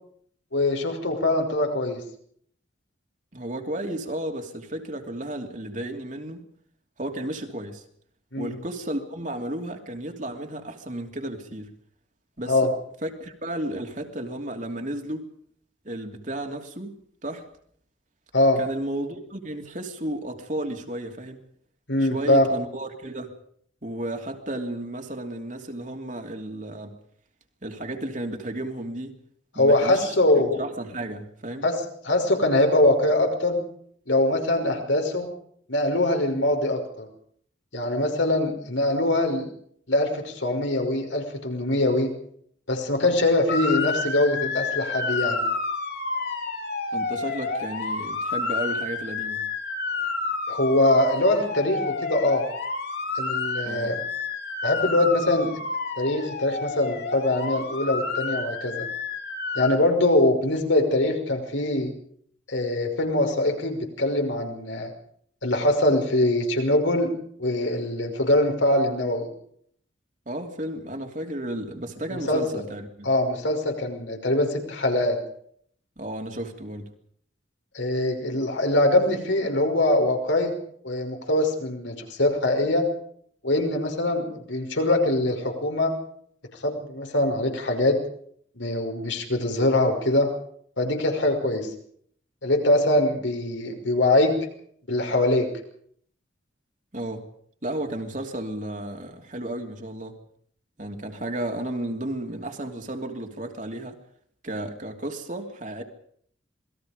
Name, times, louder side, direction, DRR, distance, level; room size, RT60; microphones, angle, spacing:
voice 1, 0.5-2.0 8.3-8.6 12.5-12.7 18.3-18.6 21.9-22.5 29.6-30.6 31.6-31.7 32.0-33.6 34.1-35.3 35.7-37.1 37.7-39.5 39.9-42.1 42.7-45.4 50.5-52.5 53.2-54.0 54.6-55.5 56.0-58.9 59.6-61.9 62.5-64.9 65.4-67.1 67.4-69.3 72.1-72.4 73.0-75.2 77.7-80.5 80.8-82.9 83.4-85.9 86.6-88.0 88.6-90.3 90.8-91.7 92.4-94.3 94.9-95.5, left 1 dB, 80° left, 5.6 m, -23 dB
voice 2, 3.3-6.4 7.0-7.8 8.4-11.7 12.4-12.7 13.0-15.2 15.8-16.9 17.2-17.5 18.6-21.4 22.0-23.3 23.8-27.0 27.6-29.2 29.5-31.7 46.9-49.4 53.6-53.9 70.3-73.1 76.0-76.9 96.9-97.3 97.6-100.2 100.8-104.0 104.4-105.8, right 1 dB, 40° right, 3.0 m, -33 dB
Motor vehicle (road) / Siren, 43.5-59.7, left 3 dB, 55° left, 4.5 m, -30 dB
27.5 x 20.5 x 5.2 m
head